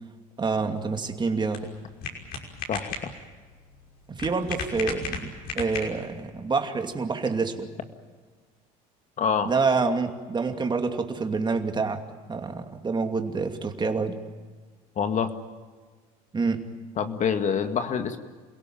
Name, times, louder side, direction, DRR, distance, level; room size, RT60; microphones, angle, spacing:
voice 1, 0.4-1.7 4.1-7.7 9.4-12.0 12.3-14.2 16.3-16.7, right 4 dB, 25° right, 6 dB, 2.6 m, -27 dB
sound 1, 0.7-6.2, left 5 dB, 60° left, 5.8 m, -37 dB
voice 2, 2.7-3.1 9.2-9.5 15.0-15.3 17.0-18.2, left 7 dB, 45° left, 8 dB, 2.0 m, -26 dB
28.5 x 17.0 x 9.0 m, 1.5 s
supercardioid pair, 85°, 17 cm